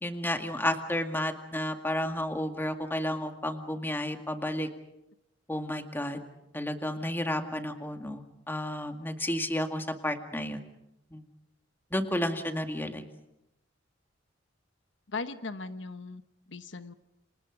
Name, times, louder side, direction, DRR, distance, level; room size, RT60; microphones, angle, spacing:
voice 1, 0.0-4.7 5.5-6.2 6.5-10.6 11.1-11.2 11.9-13.0, left 1 dB, 10° left, 5 dB, 2.0 m, -32 dB
voice 2, 15.1-16.2 16.5-16.9, left 3 dB, 75° left, 10 dB, 1.2 m, -38 dB
30.0 x 26.5 x 5.1 m, 0.85 s
head